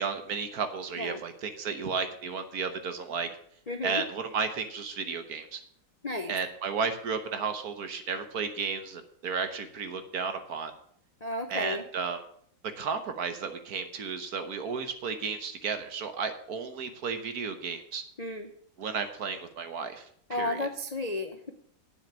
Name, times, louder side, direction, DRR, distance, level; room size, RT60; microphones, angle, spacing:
voice 1, 0.0-3.3 3.8-5.6 6.3-10.7 11.5-12.2 12.8-18.0 18.8-20.7, right 5 dB, 55° right, 8 dB, 1.4 m, -33 dB
voice 2, 3.7-4.0 6.0-6.3 11.2-11.8 18.2-18.5 20.3-21.5, left 2 dB, 50° left, 6 dB, 0.4 m, -33 dB
9.5 x 7.2 x 7.2 m, 0.63 s
omnidirectional pair, 2.0 m